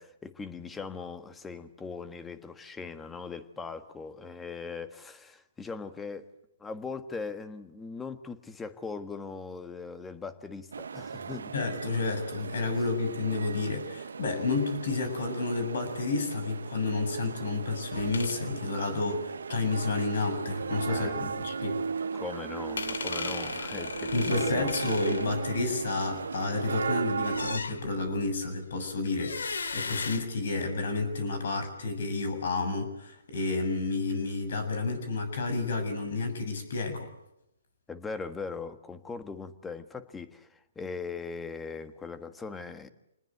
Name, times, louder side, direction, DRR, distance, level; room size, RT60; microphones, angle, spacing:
voice 1, 0.0-6.3 6.6-11.5 20.9-21.4 22.1-24.7 37.9-42.9, left 4 dB, 10° left, 10 dB, 1.5 m, -40 dB
sound 1, 10.7-27.6, right 5 dB, 80° right, 0.9 m, -36 dB
voice 2, 11.5-21.8 24.1-37.1, left 3 dB, 65° left, 9 dB, 7.1 m, -30 dB
sound 2, 17.9-18.4 22.8-26.0 27.2-28.2 29.2-30.9, left 4 dB, 85° left, 2.1 m, -37 dB
27.0 x 20.0 x 8.1 m, 0.86 s
hypercardioid pair, 145°, 0 cm